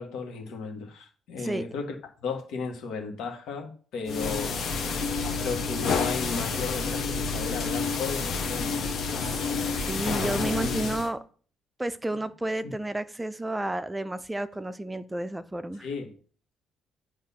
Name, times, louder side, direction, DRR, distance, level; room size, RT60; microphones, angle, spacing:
voice 1, 0.0-1.9 2.2-4.6 5.4-8.9 10.6-10.9 12.6-12.7 15.8-16.1, left 4 dB, 80° left, 1.4 m, -34 dB
sound 1, 4.1-11.1, left 4 dB, 65° left, 1.0 m, -29 dB
voice 2, 9.2-9.5 9.9-11.2 11.8-15.9, right 1 dB, 15° right, 0.4 m, -31 dB
8.2 x 2.9 x 5.6 m
cardioid pair, 95°, 0 cm